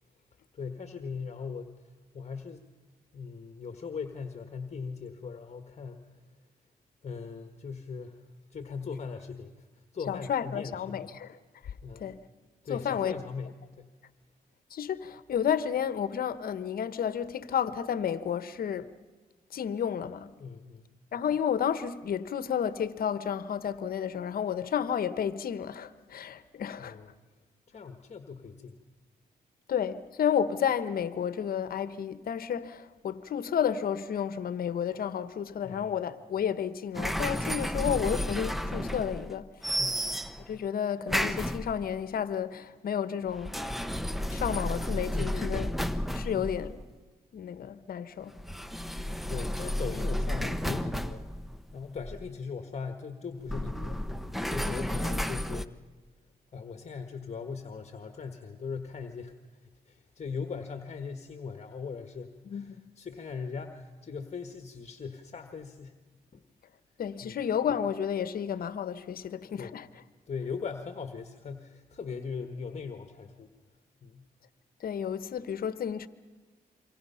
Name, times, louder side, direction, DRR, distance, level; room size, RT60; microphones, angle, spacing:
voice 1, 0.5-2.6 3.1-6.1 7.0-8.2 8.5-11.1 11.8-12.2 12.6-13.9 20.4-20.9 26.8-27.1 27.7-28.8 35.6-36.0 39.8-40.2 45.1-45.7 46.2-46.5 49.2-51.4 51.7-54.0 54.5-55.8 56.5-66.0 66.3-66.4 67.2-67.4 69.5-69.8 70.3-73.5 74.0-74.3, left 5 dB, 45° left, 1.5 m, -40 dB
voice 2, 10.1-11.3 12.0-12.2 12.7-13.2 14.7-18.9 19.5-20.3 21.1-27.0 29.7-39.5 40.5-43.6 44.3-45.7 46.1-46.8 47.3-48.4 62.5-62.7 67.0-69.9 74.8-76.1, left 8 dB, 70° left, 1.1 m, -31 dB
sound 1, 37.0-39.4 39.6-40.6 41.1-42.0 43.3-46.9 48.4-52.3 53.4-55.7, equal, ahead, 0.9 m, -32 dB
27.0 x 24.0 x 5.7 m
cardioid pair, 75°, 16 cm